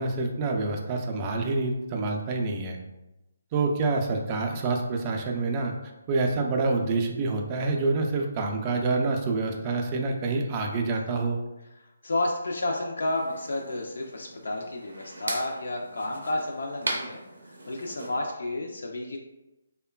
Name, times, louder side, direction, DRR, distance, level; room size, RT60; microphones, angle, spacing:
voice 1, 0.0-2.8 3.5-5.7 6.1-11.4, right 3 dB, 25° right, 2 dB, 0.3 m, -27 dB
voice 2, 11.7-17.2 17.5-19.2, left 2 dB, 75° left, 1 dB, 0.3 m, -31 dB
Click Close And Open, 13.0-18.1, right 2 dB, 90° right, 0.5 m, -38 dB
3.0 x 2.1 x 2.2 m, 0.98 s
hypercardioid pair, 160°, 0 cm